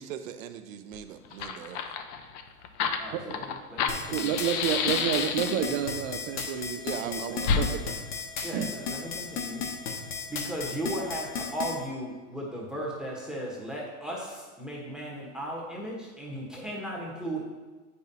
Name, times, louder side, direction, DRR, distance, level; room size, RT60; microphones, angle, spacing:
voice 1, 0.0-1.9 6.8-7.7, right 9 dB, 65° right, 8 dB, 0.7 m, -39 dB
Fire, 0.9-1.0 1.3-5.8 7.4-7.7, left 6 dB, 30° left, 0.4 m, -29 dB
voice 2, 3.0-4.3 8.4-9.7 10.3-17.4, right 1 dB, ahead, -4 dB, 1.1 m, -36 dB
sound 1, 3.9-11.8, left 5 dB, 55° left, 1.4 m, -34 dB
voice 3, 4.1-8.0 8.5-8.7, right 9 dB, 35° right, 8 dB, 0.5 m, -30 dB
7.9 x 5.5 x 2.8 m, 1.3 s
hypercardioid pair, 120°, 44 cm